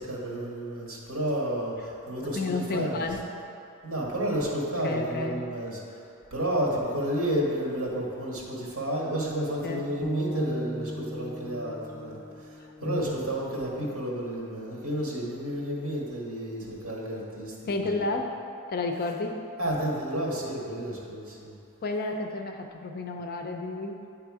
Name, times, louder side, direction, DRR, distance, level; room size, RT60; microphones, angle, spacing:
voice 1, 0.0-3.0 3.8-18.0 19.6-21.5, right 1 dB, 70° right, -3 dB, 1.7 m, -31 dB
voice 2, 2.3-3.2 4.8-5.4 9.6-9.8 12.8-13.1 17.7-18.4 18.7-19.4 21.8-24.0, left 3 dB, 45° left, 3 dB, 0.5 m, -31 dB
sound 1, 10.0-14.1, right 1 dB, 15° left, 1.4 m, -37 dB
9.5 x 3.5 x 4.7 m, 2.6 s
head